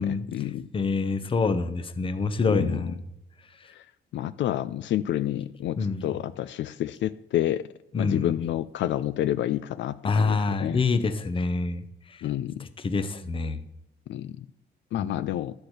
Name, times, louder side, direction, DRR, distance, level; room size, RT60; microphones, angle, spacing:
voice 1, 0.0-0.7 2.5-2.8 4.1-5.8 6.0-7.6 8.0-10.8 12.2-12.6 14.1-14.3 14.9-15.5, left 12 dB, 75° left, 12 dB, 0.4 m, -29 dB
voice 2, 0.7-2.9 5.8-6.1 7.9-8.3 10.0-11.8 12.8-13.6 15.0-15.2, left 4 dB, 30° left, 11 dB, 0.7 m, -26 dB
11.5 x 4.4 x 8.0 m, 0.84 s
wide cardioid pair, 160°, 19 cm